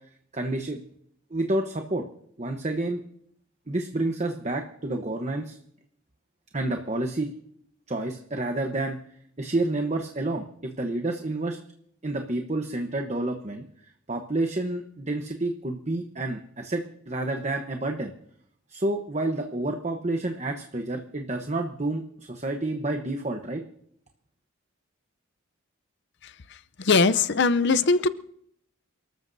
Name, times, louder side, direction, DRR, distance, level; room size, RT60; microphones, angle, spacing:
voice 1, 0.3-0.8 1.3-2.0 2.4-3.0 3.7-5.6 6.5-7.3 7.9-9.0 9.4-11.6 12.0-13.6 14.1-18.1 18.7-23.6, right 2 dB, 35° right, 4 dB, 1.0 m, -29 dB
voice 2, 26.8-28.1, left 4 dB, 55° left, 15 dB, 0.6 m, -21 dB
29.0 x 13.5 x 2.7 m, 0.69 s
head